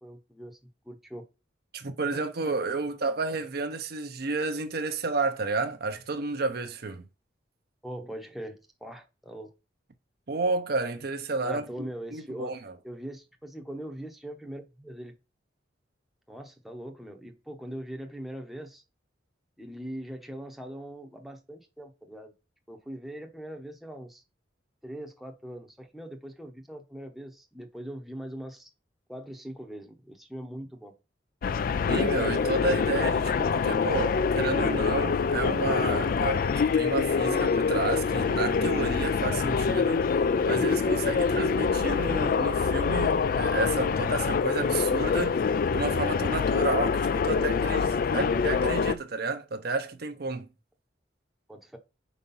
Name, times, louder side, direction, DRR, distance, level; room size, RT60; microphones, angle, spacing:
voice 1, 0.0-0.6 0.8-1.2 7.8-9.5 11.4-12.6 12.8-15.1 16.3-18.8 19.6-22.3 22.7-24.2 24.8-28.7 29.1-30.9 51.5-51.8, right 1 dB, ahead, 0.8 m, -41 dB
voice 2, 1.7-7.1 10.3-12.7 31.9-45.4 45.7-50.5, right 3 dB, 60° right, 0.7 m, -31 dB
sound 1, 31.4-48.9, left 5 dB, 50° left, 0.3 m, -25 dB
4.7 x 4.2 x 5.4 m
head